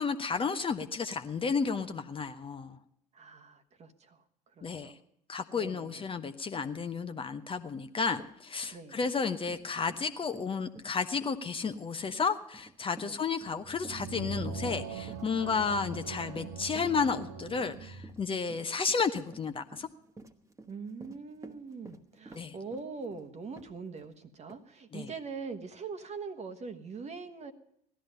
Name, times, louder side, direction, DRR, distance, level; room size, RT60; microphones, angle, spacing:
voice 1, 0.0-2.8 4.6-4.9 5.3-19.9 22.4-22.6 24.9-25.1, left 5 dB, 25° left, 9 dB, 0.8 m, -32 dB
voice 2, 3.1-4.2 4.6-5.0 5.6-6.1 8.7-9.0 13.0-13.2 20.7-27.5, right 4 dB, 35° right, 8 dB, 1.3 m, -42 dB
Run, 7.7-7.8 8.1-24.1 24.5-24.6 25.1-25.2, right 2 dB, 15° right, 1.4 m, -52 dB
sound 1, 13.6-18.2, right 5 dB, 60° right, 1.2 m, -41 dB
16.5 x 12.5 x 5.5 m, 0.74 s
figure-of-eight pair, 55°, 20 cm